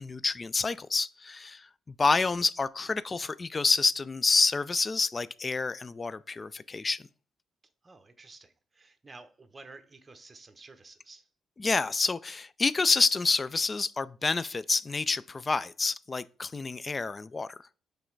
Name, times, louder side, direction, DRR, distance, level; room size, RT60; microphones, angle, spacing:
voice 1, 0.0-7.0 11.6-17.6, left 4 dB, 30° left, 0.3 m, -28 dB
voice 2, 7.8-11.3, right 3 dB, 25° right, 0.8 m, -51 dB
6.2 x 3.3 x 4.5 m
cardioid pair, 90°, 0 cm